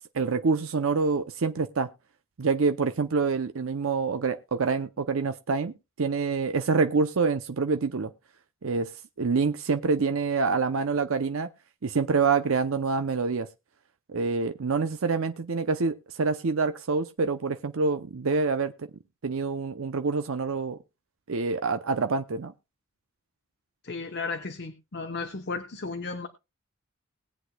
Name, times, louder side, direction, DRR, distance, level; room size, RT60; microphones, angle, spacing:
voice 1, 0.1-1.9 2.4-8.1 8.6-8.9 9.2-11.5 11.8-13.5 14.1-18.9 19.2-20.8 21.3-22.5, right 4 dB, 75° right, 0.6 m, -26 dB
voice 2, 23.8-26.3, left 4 dB, 50° left, 0.9 m, -34 dB
20.5 x 8.1 x 2.3 m
head